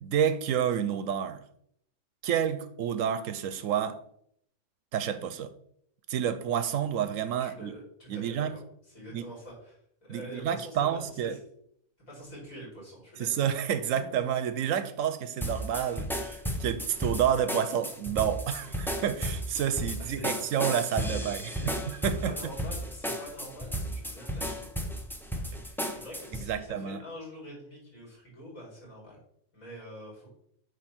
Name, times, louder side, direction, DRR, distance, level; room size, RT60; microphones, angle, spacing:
voice 1, 0.0-1.4 2.2-4.0 4.9-5.5 6.1-7.7 8.1-8.5 9.1-9.2 10.1-11.3 13.2-22.4 26.4-27.0, right 9 dB, 65° right, 0.9 m, -29 dB
voice 2, 7.4-11.4 12.1-13.4 13.9-14.1 20.0-20.4 21.1-21.7 22.3-24.7 25.9-29.2 29.5-30.3, equal, 60° left, 4.2 m, -45 dB
sound 1, 15.4-26.5, equal, 5° left, 0.4 m, -34 dB
8.3 x 3.4 x 6.0 m
omnidirectional pair, 1.6 m